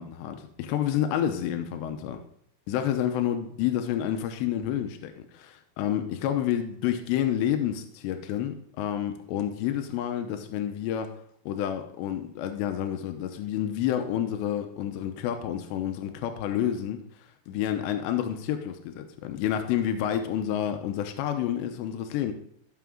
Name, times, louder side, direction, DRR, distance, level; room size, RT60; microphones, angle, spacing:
voice 1, 0.0-2.2 2.7-11.2 11.5-17.0 17.5-22.3, left 10 dB, 85° left, 7 dB, 3.0 m, -29 dB
15.0 x 6.2 x 3.7 m, 0.66 s
omnidirectional pair, 5.0 m